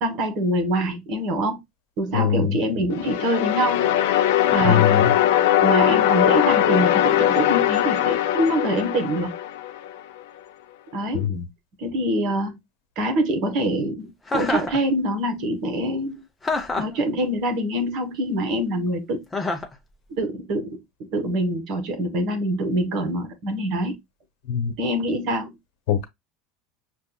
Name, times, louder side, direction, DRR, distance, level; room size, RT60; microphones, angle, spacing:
voice 1, 0.0-1.6 2.0-3.9 4.5-4.9 5.6-9.3 10.9-11.3 11.8-12.6 13.0-16.2 16.8-19.2 20.1-20.8 21.1-23.9 24.8-25.5, right 1 dB, 50° right, 1.3 m, -25 dB
voice 2, 2.1-2.5 4.6-5.1 11.1-11.5 24.5-24.7 25.9-26.0, left 8 dB, 70° left, 1.1 m, -22 dB
sound 1, 2.9-9.9, left 12 dB, 90° left, 0.6 m, -20 dB
Chuckle chortle, 14.3-14.8 16.4-17.0 19.3-19.7, left 3 dB, 10° left, 0.7 m, -26 dB
6.6 x 2.5 x 2.2 m
cardioid pair, 155°, 0 cm